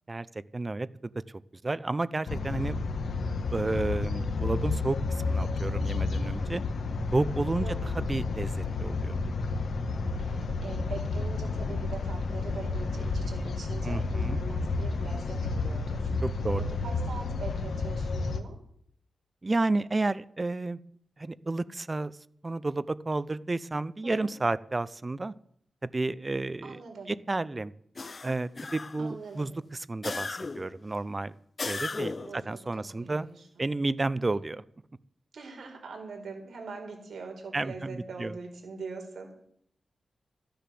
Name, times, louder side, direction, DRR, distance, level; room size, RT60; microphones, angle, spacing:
voice 1, 0.1-1.1 1.6-2.8 3.5-6.6 7.1-9.2 13.8-14.4 16.2-16.7 19.4-20.8 21.2-22.2 22.4-25.3 25.8-26.8 27.1-27.7 28.2-31.4 31.7-33.3 33.6-34.6 37.5-38.3, right 2 dB, 25° right, 17 dB, 0.6 m, -31 dB
sound 1, 2.3-18.4, left 3 dB, 75° left, 1.4 m, -31 dB
voice 2, 7.6-7.9 10.2-16.1 16.7-18.6 24.0-24.3 26.6-27.1 29.0-29.5 32.2-32.6 33.0-33.7 34.2-34.5 35.3-39.3, right 4 dB, 70° right, 2 dB, 4.5 m, -43 dB
sound 2, 28.0-29.2 30.0-30.8 31.6-32.4, left 3 dB, 35° left, 0.5 m, -36 dB
14.0 x 10.5 x 7.6 m, 0.66 s
wide cardioid pair, 125°, 0 cm